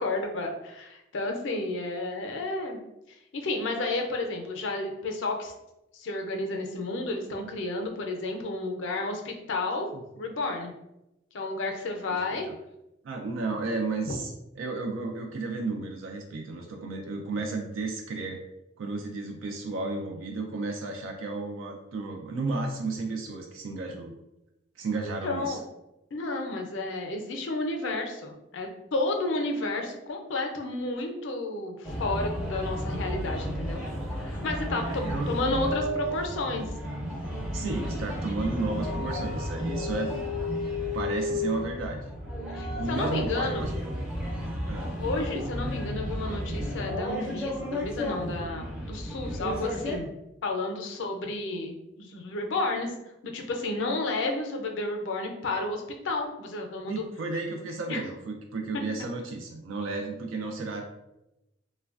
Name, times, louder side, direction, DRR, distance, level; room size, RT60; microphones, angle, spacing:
voice 1, 0.0-2.8 3.3-5.5 6.0-9.9 10.1-10.7 11.3-12.5 14.1-14.2 25.2-25.6 26.1-33.8 34.2-36.7 42.5-43.7 45.0-50.1 50.4-52.9 53.2-57.0 57.9-58.0, left 2 dB, 65° left, 3 dB, 0.5 m, -31 dB
voice 2, 13.0-18.4 18.8-24.1 24.8-25.6 32.8-33.0 34.9-35.3 37.5-40.1 40.9-42.0 42.8-43.7 44.7-44.9 56.9-60.8, right 3 dB, 90° right, 2 dB, 0.4 m, -33 dB
sound 1, 31.8-50.0, equal, 5° right, 0.4 m, -32 dB
3.1 x 2.1 x 2.4 m, 0.90 s
head